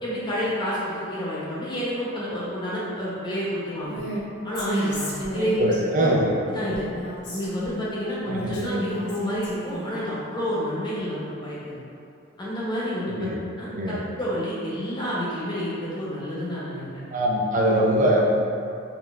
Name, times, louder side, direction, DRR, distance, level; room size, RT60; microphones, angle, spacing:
voice 1, 0.0-4.0 4.4-6.1 6.5-6.9 7.3-11.8 12.4-13.3 13.6-16.8, equal, 20° left, -8 dB, 0.8 m, -29 dB
Female speech woman speaking, 3.8-4.2 4.5-5.8 6.7-7.8 8.3-9.9, right 1 dB, 60° left, 0.7 m, -32 dB
voice 2, 5.3-6.2 8.3-8.6 13.1-13.4 13.7-14.0 17.1-18.2, right 1 dB, 40° right, -2 dB, 0.4 m, -22 dB
3.8 x 3.2 x 2.4 m, 2.6 s
head